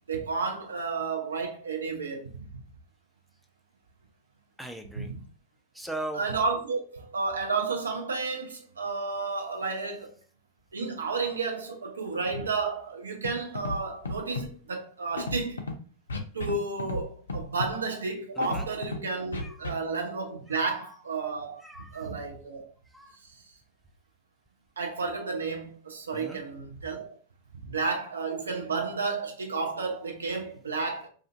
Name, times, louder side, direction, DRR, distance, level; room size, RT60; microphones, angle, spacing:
voice 1, 0.1-2.5 5.0-5.2 6.1-10.2 10.7-15.7 16.3-21.6 21.9-22.7 24.8-27.2 27.6-31.1, right 4 dB, 70° right, 0.5 m, -32 dB
voice 2, 4.6-5.1 5.7-6.2 18.4-18.7 19.4-19.7 20.5-20.6 21.6-22.1 22.9-23.2 26.1-26.4, right 1 dB, ahead, 0.3 m, -39 dB
Scratching (performance technique), 13.2-13.3 13.6-13.8 14.0-14.5 15.2-15.7 16.1-16.5 16.8-17.0 17.3-17.7 18.4-19.0 19.3-19.7, left 2 dB, 70° left, 0.4 m, -32 dB
2.4 x 2.4 x 2.4 m
figure-of-eight pair, 90°, 0 cm